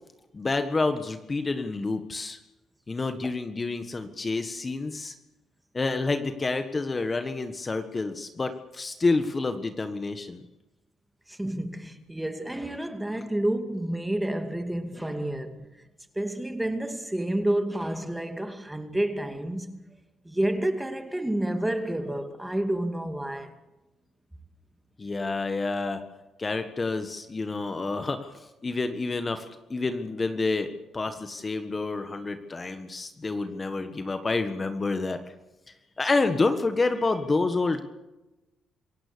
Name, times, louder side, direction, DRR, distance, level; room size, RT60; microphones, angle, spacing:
voice 1, 0.3-2.4 2.9-5.1 5.7-10.4 25.0-26.0 26.4-35.2 36.0-37.8, left 3 dB, 30° left, 1.5 m, -28 dB
voice 2, 11.3-15.7 16.1-19.8 20.2-23.5, right 1 dB, 10° right, 2.5 m, -29 dB
27.0 x 16.5 x 6.9 m
cardioid pair, 90°, 0 cm